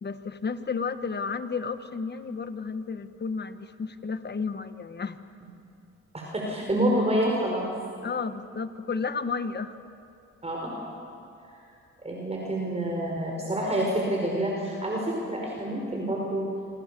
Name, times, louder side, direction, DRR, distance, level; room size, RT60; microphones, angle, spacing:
voice 1, 0.0-5.2 8.0-9.8, left 5 dB, 35° left, 10 dB, 1.5 m, -32 dB
voice 2, 6.1-7.7 10.4-10.7 12.0-16.5, right 1 dB, 20° right, -1 dB, 5.2 m, -27 dB
27.5 x 26.0 x 7.0 m, 2.6 s
cardioid pair, 90°, 30 cm